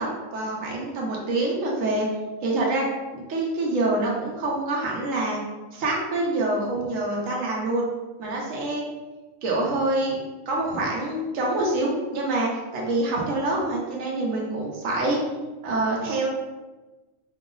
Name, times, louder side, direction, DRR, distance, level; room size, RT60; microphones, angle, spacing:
voice 1, 0.0-2.1 2.4-2.8 3.1-5.4 5.7-7.9 8.2-8.8 9.4-10.2 10.5-15.2 15.6-16.3, right 2 dB, 70° right, -3 dB, 1.2 m, -26 dB
5.0 x 2.0 x 3.7 m, 1.2 s
omnidirectional pair, 1.4 m